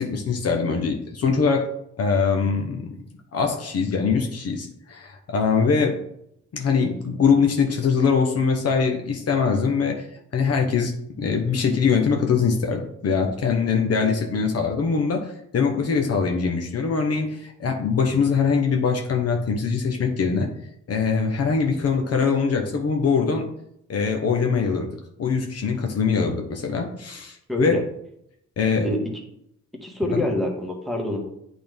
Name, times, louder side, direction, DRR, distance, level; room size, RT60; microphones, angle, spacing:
voice 1, 0.0-1.7 2.0-3.0 3.3-6.0 6.5-10.0 10.3-20.5 20.9-23.5 23.9-27.8 28.6-28.9 30.1-30.2, left 5 dB, 55° left, 3 dB, 1.1 m, -22 dB
voice 2, 27.5-27.8 28.8-29.1 29.8-31.2, left 1 dB, ahead, -1 dB, 1.7 m, -25 dB
8.5 x 4.0 x 3.5 m, 0.76 s
cardioid pair, 90°, 30 cm